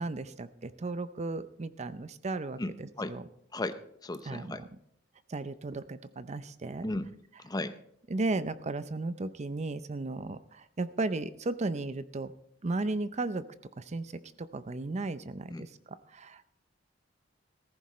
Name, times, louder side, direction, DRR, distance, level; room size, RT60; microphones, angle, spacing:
voice 1, 0.0-3.2 4.3-4.7 5.3-6.9 8.1-12.3 12.6-13.5 13.8-14.1 14.4-16.4, right 2 dB, 35° right, 13 dB, 0.6 m, -35 dB
voice 2, 2.6-3.1 3.5-4.6 6.8-7.1 7.4-7.8 15.5-15.7, left 2 dB, 20° left, 11 dB, 0.7 m, -35 dB
15.5 x 14.0 x 3.2 m, 0.70 s
head